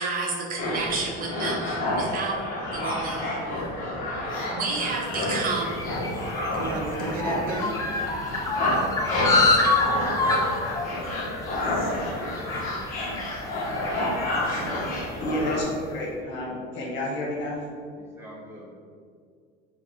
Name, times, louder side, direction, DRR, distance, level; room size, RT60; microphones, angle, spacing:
voice 1, 0.0-2.5 2.7-3.3 4.5-5.7 6.5-7.7 14.6-14.9, right 3 dB, 45° right, 0 dB, 0.6 m, -30 dB
sound 1, 0.6-15.6, left 1 dB, 40° left, 1.0 m, -29 dB
sound 2, 5.1-15.7, left 3 dB, 15° left, 0.5 m, -28 dB
voice 2, 13.0-14.0 18.0-18.7, right 1 dB, 10° right, -6 dB, 1.3 m, -46 dB
voice 3, 15.2-17.6, left 1 dB, 60° left, -3 dB, 1.2 m, -30 dB
4.6 x 2.2 x 4.0 m, 2.1 s
cardioid pair, 120°, 21 cm